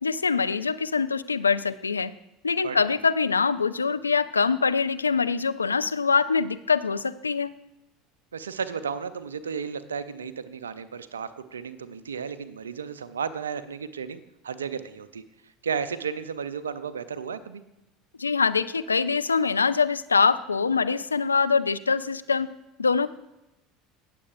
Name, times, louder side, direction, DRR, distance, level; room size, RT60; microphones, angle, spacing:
voice 1, 0.0-2.1 2.4-7.5 18.2-22.5 22.8-23.1, left 5 dB, 90° left, 13 dB, 0.3 m, -24 dB
voice 2, 2.6-3.0 8.3-15.2 15.6-17.6, right 6 dB, 80° right, 14 dB, 0.5 m, -33 dB
18.0 x 7.5 x 2.5 m, 0.93 s
figure-of-eight pair, 70°, 0 cm